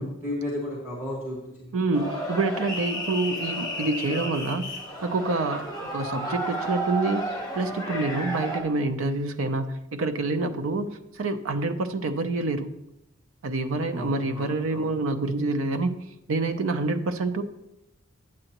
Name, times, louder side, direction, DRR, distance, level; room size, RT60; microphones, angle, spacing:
voice 1, 0.0-1.8 13.9-14.9, left 1 dB, 10° right, -7 dB, 1.6 m, -34 dB
voice 2, 1.7-4.7 5.0-7.3 7.5-12.7 13.4-16.0 16.3-17.4, right 2 dB, 80° right, 8 dB, 0.5 m, -27 dB
sound 1, 1.9-8.6, right 1 dB, 20° left, 1.3 m, -32 dB
8.8 x 7.5 x 2.9 m, 0.88 s
head